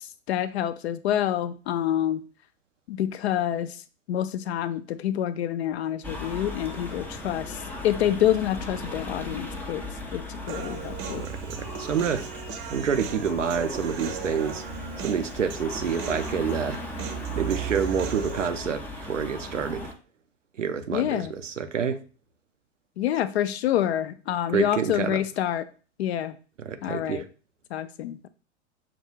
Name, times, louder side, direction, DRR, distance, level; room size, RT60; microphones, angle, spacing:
voice 1, 0.3-2.2 2.9-3.7 4.1-7.6 7.8-9.8 10.1-11.3 20.9-21.3 23.0-25.6 26.0-26.3 26.8-27.2 27.7-28.3, left 11 dB, 60° left, 0.5 m, -27 dB
sound 1, 6.0-19.9, right 1 dB, 5° left, 0.4 m, -36 dB
Human voice, 10.5-18.5, right 7 dB, 35° right, 0.7 m, -38 dB
voice 2, 11.1-12.3 12.7-14.6 15.0-16.8 17.3-19.9 20.6-22.0 24.5-25.2 26.6-27.3, right 6 dB, 85° right, 0.6 m, -28 dB
5.8 x 2.4 x 3.1 m
figure-of-eight pair, 100°, 36 cm